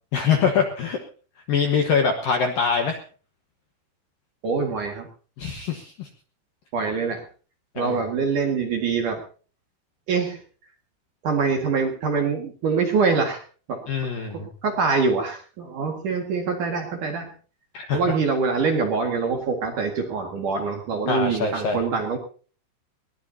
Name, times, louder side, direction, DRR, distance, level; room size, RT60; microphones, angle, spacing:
voice 1, 0.1-1.0 1.5-3.0 5.4-6.1 7.8-8.0 13.9-14.5 17.7-18.0 21.1-21.8, left 6 dB, 70° left, 4 dB, 2.2 m, -23 dB
voice 2, 4.4-5.1 6.7-7.2 7.8-9.2 10.1-10.4 11.2-13.4 13.7-13.8 14.3-17.3 17.9-22.2, right 4 dB, 55° right, 2 dB, 2.5 m, -24 dB
21.5 x 18.0 x 2.8 m, 0.40 s
omnidirectional pair, 6.0 m